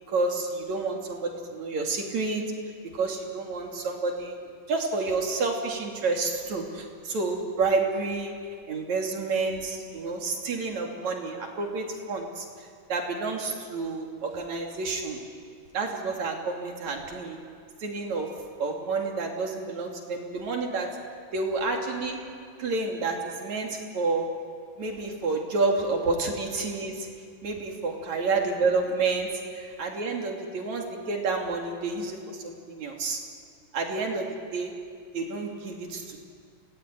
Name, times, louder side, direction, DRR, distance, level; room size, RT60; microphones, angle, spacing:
voice 1, 0.1-2.4 2.9-8.3 8.7-12.5 12.9-15.2 15.7-17.4 17.8-18.3 18.6-20.9 21.3-22.2 22.6-24.3 24.8-27.1 27.4-33.2 33.7-34.7 35.1-36.2, right 3 dB, 60° right, 1 dB, 4.0 m, -29 dB
29.0 x 19.0 x 9.3 m, 2.2 s
omnidirectional pair, 3.7 m